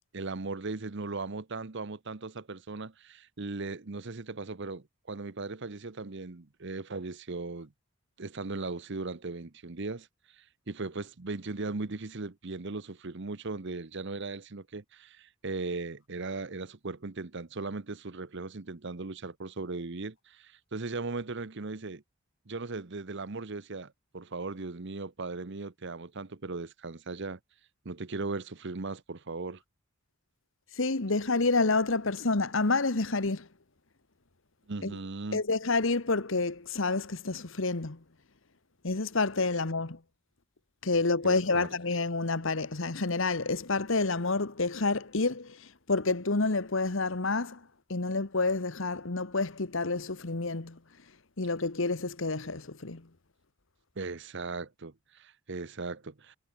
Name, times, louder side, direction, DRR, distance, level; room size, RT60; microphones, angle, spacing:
voice 1, 0.1-7.7 8.2-10.1 10.3-22.0 22.5-27.4 27.8-29.6 34.7-35.4 41.2-41.7 54.0-56.4, right 3 dB, 55° right, 1.0 m, -38 dB
voice 2, 30.7-33.5 34.8-34.9 35.3-38.0 38.8-40.0 40.8-47.6 47.9-50.8 51.4-53.0, left 3 dB, 65° left, 1.3 m, -29 dB
head